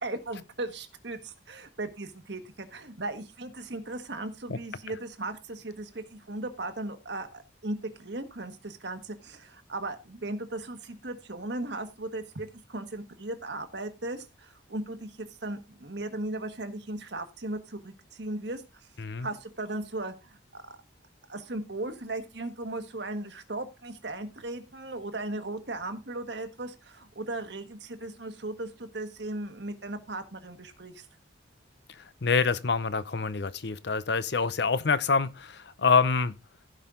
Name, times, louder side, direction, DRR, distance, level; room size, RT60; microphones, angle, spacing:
voice 1, 0.0-18.9 19.2-20.8 21.3-31.0, right 2 dB, 60° right, 1.4 m, -37 dB
voice 2, 19.0-19.3 32.2-36.4, left 5 dB, 55° left, 0.6 m, -26 dB
15.5 x 5.6 x 3.8 m
head